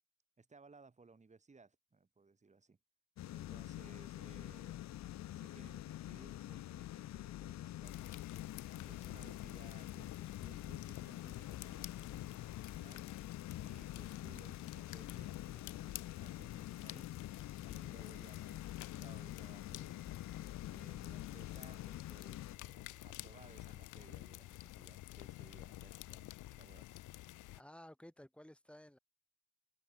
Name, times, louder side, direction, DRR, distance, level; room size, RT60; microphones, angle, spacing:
voice 1, 0.4-2.8 3.3-4.8 5.3-8.3 8.8-13.1 13.6-17.1 17.7-20.0 20.7-27.0, right 4 dB, 25° right, 1.9 m, -62 dB
sound 1, 3.2-22.6, left 13 dB, 65° left, 0.7 m, -47 dB
sound 2, 7.8-27.6, left 16 dB, 85° left, 1.3 m, -50 dB
voice 2, 27.5-29.0, left 1 dB, 5° left, 4.4 m, -55 dB
open air
cardioid pair, 90°, 30 cm